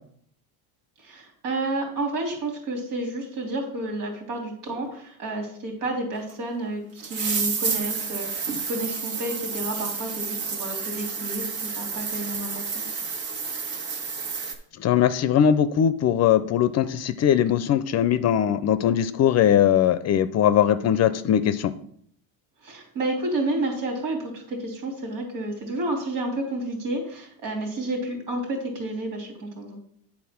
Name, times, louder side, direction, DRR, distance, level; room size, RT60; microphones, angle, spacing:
voice 1, 1.0-13.0 22.6-29.8, right 2 dB, 90° right, 1 dB, 3.2 m, -30 dB
sound 1, 6.3-6.4 7.0-14.5, right 5 dB, 70° right, 1.6 m, -30 dB
voice 2, 14.8-21.7, left 9 dB, 35° left, 14 dB, 0.4 m, -20 dB
8.6 x 4.2 x 5.7 m, 0.65 s
supercardioid pair, 110°, 47 cm